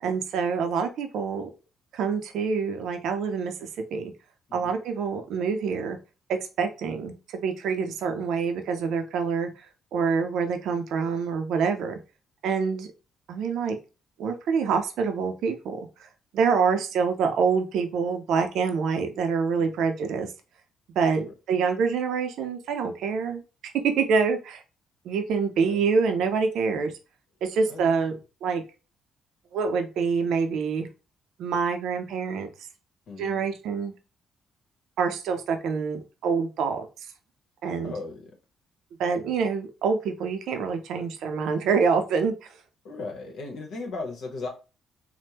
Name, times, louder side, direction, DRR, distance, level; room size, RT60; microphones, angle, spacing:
voice 1, 0.0-1.5 1.9-4.1 4.5-6.0 6.3-9.5 9.9-11.9 12.4-12.9 13.3-13.8 14.2-15.8 16.3-20.3 21.0-23.4 23.8-24.6 25.0-26.9 27.4-28.6 29.5-30.9 31.4-32.5 33.2-33.9 35.0-36.9 37.6-37.9 39.0-42.5, right 5 dB, 80° right, 6 dB, 0.5 m, -26 dB
voice 2, 27.7-28.2 33.1-33.5 37.8-38.3 42.8-44.5, left 3 dB, 75° left, 2 dB, 1.0 m, -37 dB
3.4 x 2.1 x 2.8 m, 0.31 s
cardioid pair, 90°, 0 cm